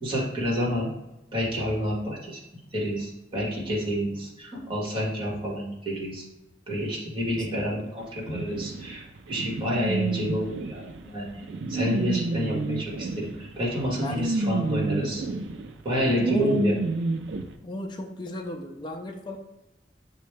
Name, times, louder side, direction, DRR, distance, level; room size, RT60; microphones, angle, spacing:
voice 1, 0.0-0.9 1.3-2.4 2.7-6.2 6.7-9.0 9.3-11.4 11.7-15.2 15.8-16.8, equal, 30° right, -4 dB, 1.4 m, -29 dB
voice 2, 7.2-7.8 13.8-14.5 16.2-16.8 17.6-19.4, left 1 dB, 25° left, 2 dB, 0.4 m, -36 dB
sound 1, 8.3-17.4, right 3 dB, 70° right, 0.4 m, -30 dB
6.0 x 2.2 x 3.3 m, 0.95 s
head